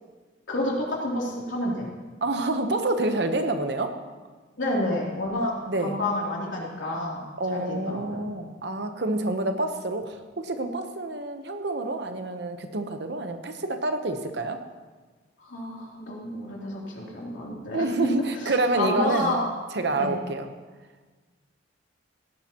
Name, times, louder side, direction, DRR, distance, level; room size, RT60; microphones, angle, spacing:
voice 1, 0.5-1.9 4.6-5.5 5.8-7.2 7.5-8.2 15.4-17.8 18.4-19.4 19.9-20.2, left 1 dB, 80° left, -3 dB, 3.1 m, -29 dB
voice 2, 2.2-3.9 5.7-6.0 7.4-14.6 17.7-19.3 19.7-20.5, right 2 dB, 60° right, 7 dB, 0.9 m, -28 dB
17.0 x 11.5 x 3.0 m, 1.4 s
head